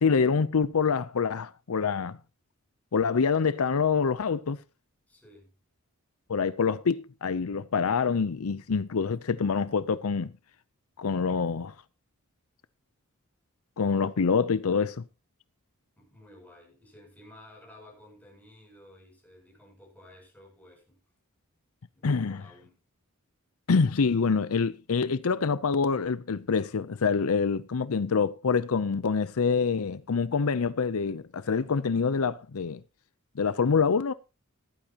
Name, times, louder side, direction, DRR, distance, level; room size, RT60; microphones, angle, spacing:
voice 1, 0.0-2.2 2.9-4.6 6.3-10.3 11.0-11.7 13.8-15.0 22.0-22.4 23.7-32.8 33.4-34.1, left 5 dB, 80° left, 0.6 m, -26 dB
voice 2, 5.1-5.5 16.0-21.0 21.9-22.7, left 1 dB, 5° left, 7.2 m, -53 dB
16.5 x 12.5 x 2.9 m
head